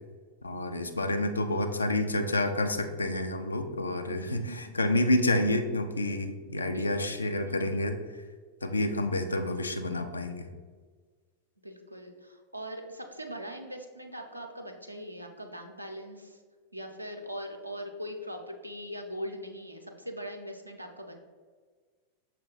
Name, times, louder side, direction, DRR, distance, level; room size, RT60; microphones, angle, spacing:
voice 1, 0.4-8.0 8.6-10.5, left 1 dB, 80° left, 6 dB, 0.4 m, -29 dB
voice 2, 4.1-4.8 6.7-7.2 7.5-7.6 9.5-9.8 11.6-16.4 16.7-21.2, equal, 85° right, 3 dB, 0.5 m, -41 dB
6.2 x 2.1 x 3.8 m, 1.5 s
figure-of-eight pair, 90°, 0 cm